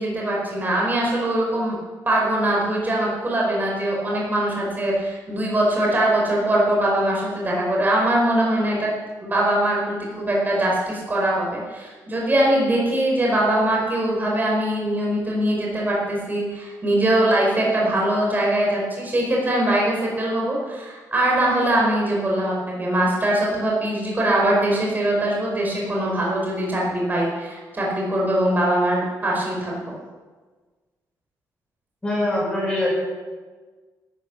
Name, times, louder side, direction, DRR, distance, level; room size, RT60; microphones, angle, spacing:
voice 1, 0.0-1.8 2.1-8.9 9.2-29.8, right 1 dB, 25° right, -3 dB, 4.9 m, -22 dB
voice 2, 32.0-32.9, left 1 dB, 15° left, -4 dB, 5.9 m, -23 dB
13.0 x 11.0 x 7.0 m, 1.4 s
cardioid pair, 115°, 7 cm